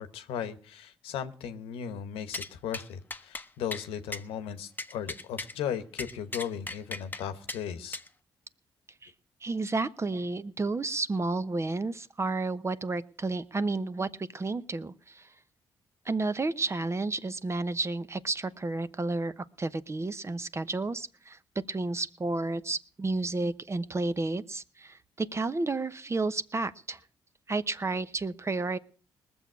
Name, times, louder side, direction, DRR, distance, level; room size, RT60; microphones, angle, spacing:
voice 1, 0.0-8.0, left 8 dB, 90° left, 10 dB, 1.0 m, -36 dB
sound 1, 2.3-2.5 2.7-2.8 3.1-3.5 3.7-3.8 4.1-4.2 4.8-5.5 6.0-7.2 7.5-7.6 7.9-8.1, left 2 dB, 20° left, 0.9 m, -37 dB
voice 2, 9.4-15.3 16.1-21.4 21.7-27.0 27.5-28.8, right 3 dB, 30° right, 14 dB, 0.8 m, -31 dB
20.0 x 7.1 x 6.0 m, 0.41 s
supercardioid pair, 60°, 9 cm